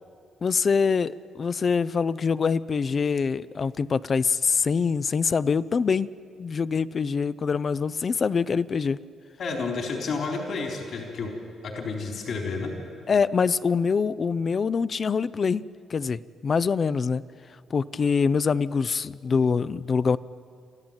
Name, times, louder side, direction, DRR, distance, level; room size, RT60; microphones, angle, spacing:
voice 1, 0.4-6.1 6.4-9.0 13.1-15.6 15.9-17.2 17.7-20.2, left 5 dB, 40° left, 16 dB, 0.5 m, -24 dB
voice 2, 9.4-11.3 11.6-12.7, left 4 dB, 60° left, 1 dB, 3.9 m, -30 dB
27.5 x 13.5 x 8.9 m, 2.4 s
cardioid pair, 90°, 0 cm